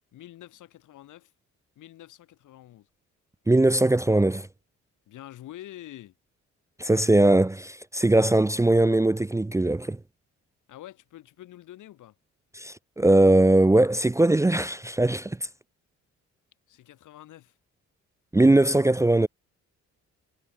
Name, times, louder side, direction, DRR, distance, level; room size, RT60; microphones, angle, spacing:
voice 1, 0.1-1.3 1.8-2.9 5.1-6.1 10.7-12.2 16.7-17.6, left 13 dB, 80° left, 7.5 m, -46 dB
voice 2, 3.5-4.5 6.8-10.0 12.5-15.4 18.3-19.3, right 2 dB, 10° right, 0.6 m, -20 dB
cardioid pair, 90°, 30 cm